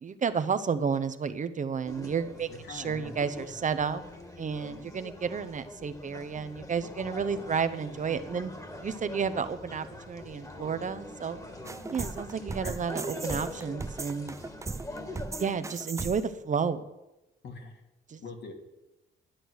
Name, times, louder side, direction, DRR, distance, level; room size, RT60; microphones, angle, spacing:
voice 1, 0.0-4.0 4.4-8.5 8.8-11.4 11.9-14.3 15.4-16.8 18.1-18.2, right 6 dB, 40° right, 11 dB, 0.8 m, -31 dB
sound 1, 1.9-15.5, left 1 dB, 15° left, 2.0 m, -44 dB
voice 2, 2.5-3.1 3.4-3.5 12.6-12.8 17.4-17.8 18.2-18.5, left 4 dB, 60° left, 3 dB, 2.6 m, -43 dB
sound 2, 11.6-16.4, right 3 dB, 15° right, 0.4 m, -38 dB
11.5 x 7.7 x 6.4 m, 0.96 s
cardioid pair, 90°, 20 cm